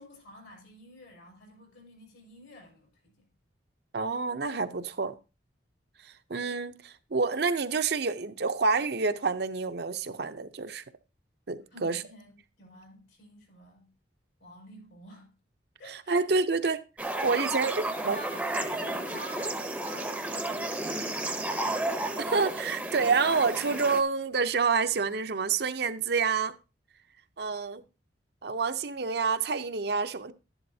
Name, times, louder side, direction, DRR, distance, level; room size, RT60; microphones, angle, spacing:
voice 1, 0.0-3.2 11.7-13.9 14.4-15.3 15.8-16.2 17.3-21.6, left 1 dB, 75° left, 4.7 m, -48 dB
voice 2, 3.9-5.1 6.0-10.8 11.5-12.0 15.8-16.8 17.2-17.7 18.0-18.2 22.2-26.5 27.4-27.8 28.4-30.3, right 4 dB, 55° right, 0.6 m, -28 dB
sound 1, 17.0-24.0, right 1 dB, 5° right, 0.7 m, -32 dB
11.5 x 11.0 x 2.7 m
head